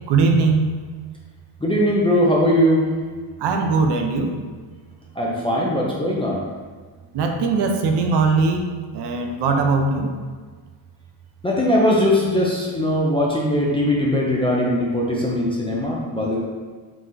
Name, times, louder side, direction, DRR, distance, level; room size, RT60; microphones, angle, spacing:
voice 1, 0.1-0.8 3.4-4.3 7.1-8.7 8.9-10.1, right 4 dB, 55° right, 4 dB, 0.6 m, -20 dB
voice 2, 1.6-2.9 5.2-6.4 11.4-16.4, equal, 10° left, -5 dB, 0.5 m, -20 dB
3.9 x 3.0 x 3.8 m, 1.5 s
cardioid pair, 125°, 49 cm